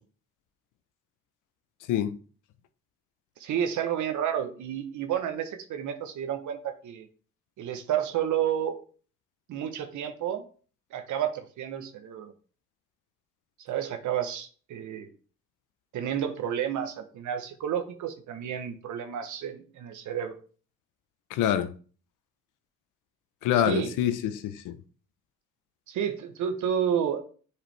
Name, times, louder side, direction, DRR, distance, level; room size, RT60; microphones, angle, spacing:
voice 1, 3.4-7.1 7.6-8.8 9.5-10.4 10.9-12.3 13.6-15.1 15.9-20.4 23.5-23.9 25.9-27.2, right 9 dB, 75° right, 1.0 m, -30 dB
voice 2, 21.3-21.7 23.4-24.8, left 10 dB, 90° left, 0.7 m, -26 dB
7.5 x 4.9 x 3.3 m
cardioid pair, 90°, 30 cm